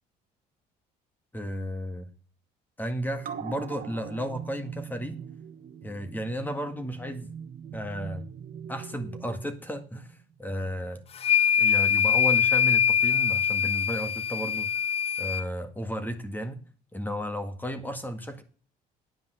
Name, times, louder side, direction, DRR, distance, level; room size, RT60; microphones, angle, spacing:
voice 1, 1.3-2.1 2.8-5.2 5.8-7.3 7.7-8.3 8.7-11.0 11.6-14.7 15.2-16.6 16.9-18.4, equal, 10° left, 8 dB, 1.8 m, -33 dB
sound 1, 3.2-10.1 10.5-10.6, right 7 dB, 55° right, 1.4 m, -42 dB
sound 2, 11.2-15.4, left 8 dB, 35° left, 0.4 m, -23 dB
10.5 x 5.3 x 7.8 m, 0.39 s
cardioid pair, 110°, 17 cm